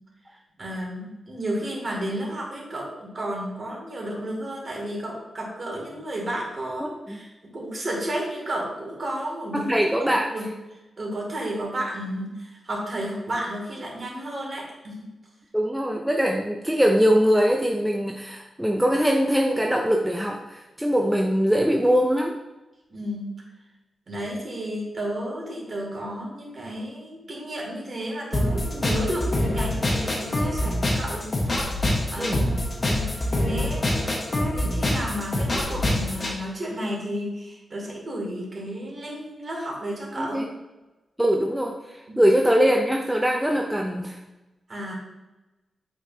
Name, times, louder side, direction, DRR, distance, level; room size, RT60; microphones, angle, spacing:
voice 1, 0.6-9.7 10.1-10.5 11.0-15.0 22.9-23.3 24.1-31.8 32.1-32.6 32.9-34.3 34.5-40.5 42.1-42.2 44.7-44.9, right 1 dB, 40° right, -3 dB, 2.4 m, -32 dB
voice 2, 6.8-7.2 9.5-10.3 15.5-22.3 32.2-32.4 40.2-40.5 41.2-44.2, equal, 5° right, 1 dB, 0.5 m, -22 dB
sound 1, 28.3-36.3, left 1 dB, 35° left, 1.2 m, -25 dB
8.2 x 5.3 x 2.8 m, 1.0 s
wide cardioid pair, 135°, 0 cm